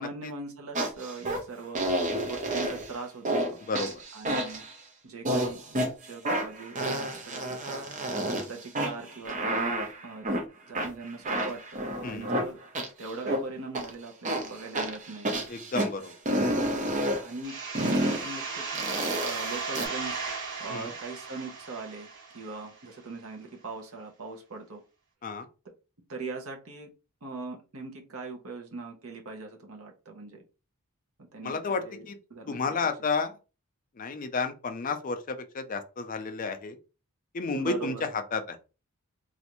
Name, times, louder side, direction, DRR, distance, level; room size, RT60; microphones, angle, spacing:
voice 1, 0.0-1.8 2.3-3.6 4.1-4.6 5.0-7.9 8.3-9.7 10.0-10.3 10.7-12.6 13.0-15.3 17.2-19.0 19.2-20.2 20.6-22.1 22.3-24.8 26.1-26.9 27.2-30.4 31.3-32.9 37.6-38.1, right 3 dB, 70° right, 0.8 m, -40 dB
sound 1, 0.8-1.4 1.8-2.9 3.3-3.5 3.8-4.7 5.3-5.9 6.3-8.4 8.8-10.4 10.7-13.4 13.8-13.9 14.3-15.9 16.3-17.2 17.8-18.2 18.8-19.9, right 1 dB, 35° right, 0.6 m, -29 dB
voice 2, 3.6-3.9 12.0-12.3 15.5-16.1 20.7-20.9 25.2-25.5 31.4-32.2 32.5-33.4 34.0-36.8 37.3-38.6, left 4 dB, 35° left, 0.4 m, -31 dB
sound 2, 17.4-22.9, right 4 dB, 55° right, 1.1 m, -36 dB
3.1 x 2.5 x 2.9 m
head